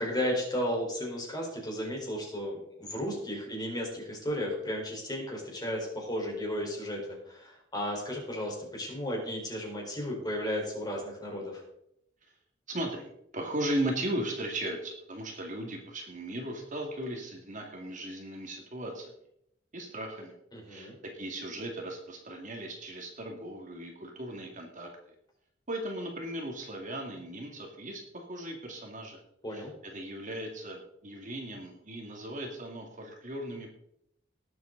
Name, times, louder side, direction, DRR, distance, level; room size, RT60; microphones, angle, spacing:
voice 1, 0.0-11.6 20.5-20.9 29.4-29.7, equal, 20° left, -1 dB, 4.4 m, -34 dB
voice 2, 12.7-19.1 19.7-20.3 20.7-24.9 25.7-29.2 29.5-33.7, right 1 dB, 40° right, 1 dB, 2.3 m, -37 dB
19.5 x 7.9 x 4.0 m, 0.75 s
head